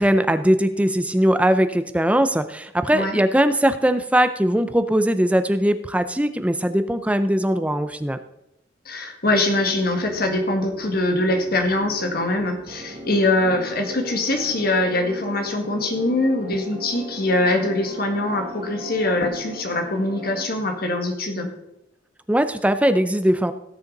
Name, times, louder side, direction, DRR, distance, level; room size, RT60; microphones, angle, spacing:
voice 1, 0.0-8.2 22.3-23.5, equal, 5° right, 10 dB, 0.6 m, -20 dB
voice 2, 8.9-21.5, left 2 dB, 50° left, 4 dB, 1.9 m, -23 dB
sound 1, 9.5-20.5, equal, 30° right, 1.5 m, -38 dB
17.5 x 6.8 x 4.0 m, 0.84 s
head